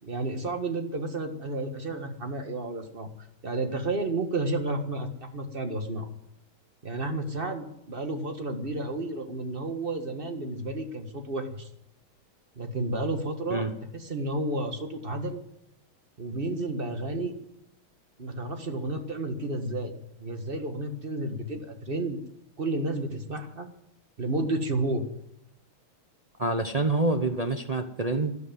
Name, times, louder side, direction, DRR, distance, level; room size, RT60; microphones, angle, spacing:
voice 1, 0.0-6.1 6.8-11.7 12.5-13.7 13.9-15.4 16.2-17.4 18.2-19.9 20.2-22.2 22.6-23.7 24.2-25.0, right 2 dB, 30° right, 6 dB, 1.7 m, -31 dB
voice 2, 26.4-28.4, right 2 dB, 70° right, 5 dB, 0.3 m, -27 dB
12.5 x 12.0 x 9.3 m, 0.78 s
omnidirectional pair, 2.3 m